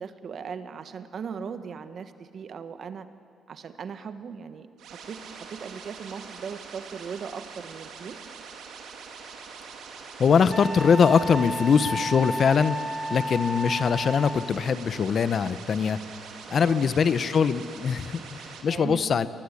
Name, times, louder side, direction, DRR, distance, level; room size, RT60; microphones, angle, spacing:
voice 1, 0.0-3.1 3.5-4.7 5.1-8.2 13.2-13.5 16.4-16.9 18.7-19.0, right 6 dB, 55° right, 10 dB, 1.5 m, -38 dB
sound 1, 4.8-18.6, right 5 dB, 80° right, 3.7 m, -43 dB
voice 2, 10.2-12.8 13.1-16.0 16.5-19.3, left 6 dB, 50° left, 14 dB, 1.1 m, -22 dB
Wind instrument woodwind instrument, 10.5-14.6, equal, 10° right, 1.6 m, -32 dB
28.5 x 20.5 x 9.9 m, 2.5 s
cardioid pair, 90°, 0 cm